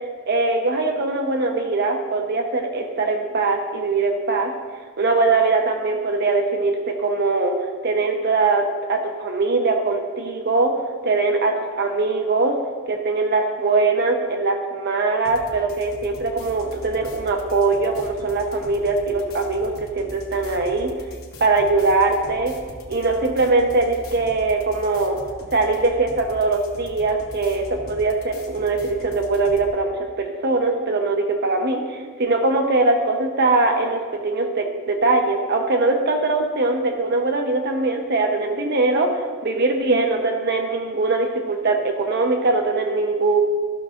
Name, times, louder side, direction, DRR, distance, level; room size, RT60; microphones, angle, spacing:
voice 1, 0.3-4.5 5.0-7.5 7.8-10.7 11.0-12.5 12.9-20.9 21.4-22.5 22.9-25.2 25.5-43.4, right 3 dB, 50° right, 3 dB, 0.7 m, -21 dB
sound 1, 15.2-29.7, left 1 dB, 80° left, 1.1 m, -41 dB
13.5 x 6.1 x 2.5 m, 1.6 s
head